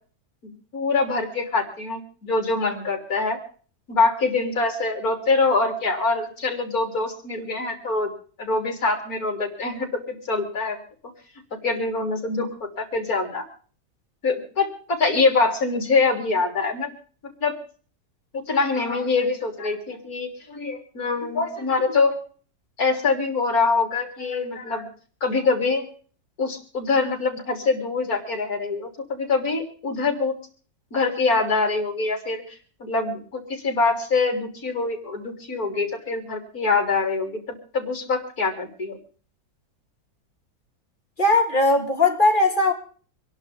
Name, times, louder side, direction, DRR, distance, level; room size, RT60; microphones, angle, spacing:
voice 1, 0.4-3.4 3.9-8.1 8.4-10.8 11.6-13.5 14.2-16.9 17.4-17.6 18.3-22.2 22.8-24.9 25.2-25.9 26.4-30.3 30.9-32.4 32.8-39.0, left 3 dB, 50° left, 4.0 m, -24 dB
voice 2, 41.2-42.7, left 2 dB, 25° left, 3.1 m, -19 dB
26.0 x 11.5 x 3.5 m
omnidirectional pair, 2.0 m